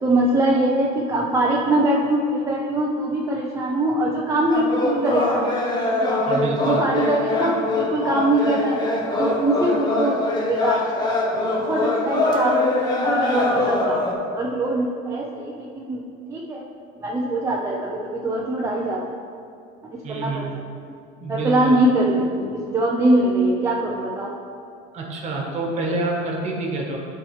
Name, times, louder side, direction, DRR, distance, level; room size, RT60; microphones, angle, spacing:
voice 1, 0.0-5.5 6.3-8.8 9.2-11.1 11.6-12.6 13.0-14.0 14.3-16.0 16.3-16.6 17.0-19.1 19.9-20.4 21.3-24.3, right 1 dB, 15° right, -3 dB, 0.5 m, -22 dB
sound 1, 4.5-14.1, left 2 dB, 20° left, 0.9 m, -23 dB
voice 2, 6.3-6.9 20.0-20.6 21.2-21.8 24.9-27.0, right 2 dB, 35° right, -1 dB, 1.4 m, -27 dB
11.5 x 4.6 x 3.2 m, 2.5 s
cardioid pair, 155°, 20 cm